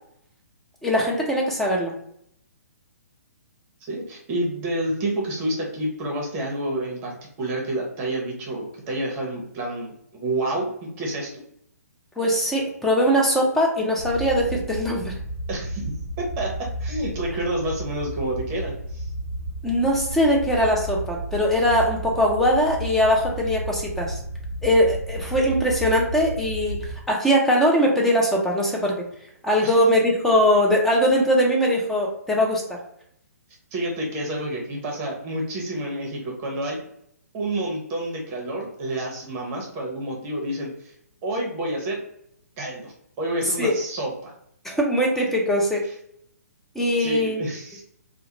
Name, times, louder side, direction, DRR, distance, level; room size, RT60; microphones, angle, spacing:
voice 1, 0.8-1.9 12.2-15.2 19.6-24.2 24.6-29.0 29.4-32.8 43.6-43.7 44.6-45.8 46.7-47.4, equal, 5° left, -2 dB, 0.5 m, -21 dB
voice 2, 3.9-11.4 15.5-15.8 16.2-16.5 16.8-19.1 29.6-29.7 33.7-36.8 37.3-40.9 41.2-42.0 42.6-44.3 47.0-47.8, right 1 dB, 25° right, -1 dB, 0.9 m, -29 dB
sound 1, 14.0-27.0, right 1 dB, 75° left, 0.8 m, -32 dB
2.3 x 2.1 x 2.9 m, 0.71 s
hypercardioid pair, 135°, 9 cm